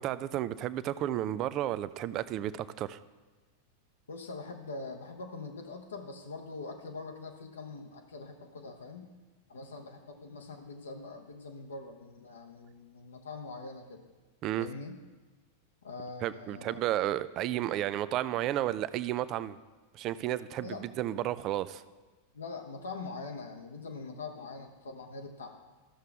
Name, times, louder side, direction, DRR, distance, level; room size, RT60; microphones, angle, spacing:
voice 1, 0.0-3.0 14.4-14.7 16.2-19.6 19.9-21.8, right 13 dB, 35° right, 15 dB, 0.4 m, -32 dB
voice 2, 4.1-9.1 9.5-14.0 14.6-15.0 15.8-16.8 20.6-20.8 22.3-25.6, left 3 dB, 70° left, 3 dB, 0.9 m, -43 dB
14.0 x 6.6 x 3.5 m, 1.3 s
figure-of-eight pair, 90°, 0 cm